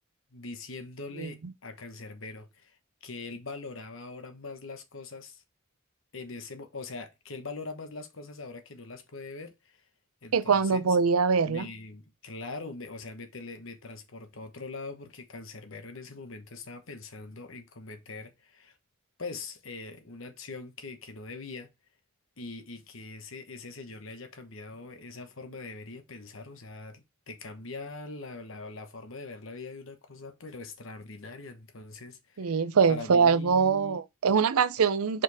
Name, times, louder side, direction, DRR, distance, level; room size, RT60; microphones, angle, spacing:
voice 1, 0.3-2.8 3.0-5.4 6.1-9.8 10.2-11.0 11.5-18.8 19.2-21.7 22.4-32.6 32.9-34.0, left 3 dB, 65° left, 1.1 m, -42 dB
voice 2, 10.3-11.7 32.4-35.2, right 5 dB, 85° right, 0.5 m, -23 dB
5.1 x 4.5 x 4.7 m
head